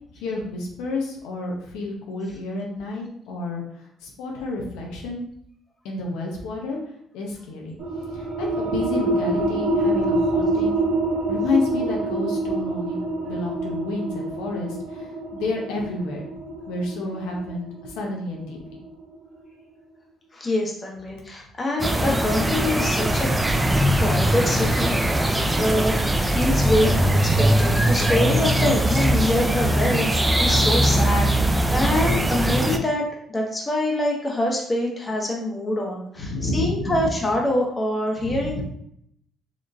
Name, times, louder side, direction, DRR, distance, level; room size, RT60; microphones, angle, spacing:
voice 1, 0.1-3.6 4.0-5.2 5.8-6.8 7.1-7.8 8.1-10.9 11.3-16.3 16.7-18.6 28.4-28.8 36.2-37.1 38.2-38.6, left 2 dB, 90° left, -1 dB, 0.8 m, -30 dB
sound 1, 7.8-19.0, right 2 dB, 65° right, 1.5 m, -26 dB
voice 2, 20.3-23.3 24.0-24.9 25.6-38.6, left 1 dB, 25° left, -1 dB, 1.1 m, -25 dB
sound 2, 21.8-32.8, right 1 dB, 15° right, 0.4 m, -21 dB
4.1 x 3.0 x 2.6 m, 0.69 s
cardioid pair, 85°, 0 cm